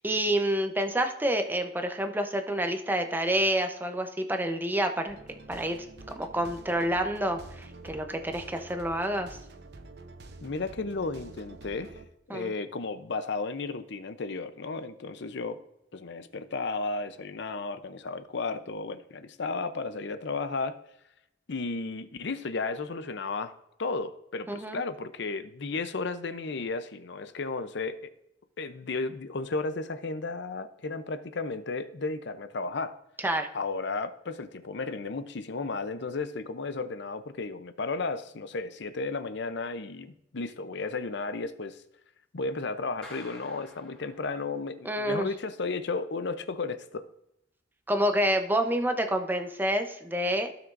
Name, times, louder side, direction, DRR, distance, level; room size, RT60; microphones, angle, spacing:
voice 1, 0.0-5.2 5.5-5.9 6.2-9.4 12.3-12.5 24.5-24.8 33.2-33.5 44.8-45.3 47.9-50.5, right 1 dB, 10° right, 5 dB, 0.8 m, -28 dB
sound 1, 5.1-12.1, right 2 dB, 60° right, 0.8 m, -47 dB
voice 2, 10.4-12.0 12.3-15.6 15.9-20.8 21.5-28.1 28.6-33.0 33.5-41.8 42.3-47.1, left 3 dB, 65° left, 11 dB, 0.6 m, -34 dB
Clapping, 43.0-44.8, left 2 dB, 5° left, 3.6 m, -49 dB
15.5 x 6.0 x 2.6 m, 0.80 s
head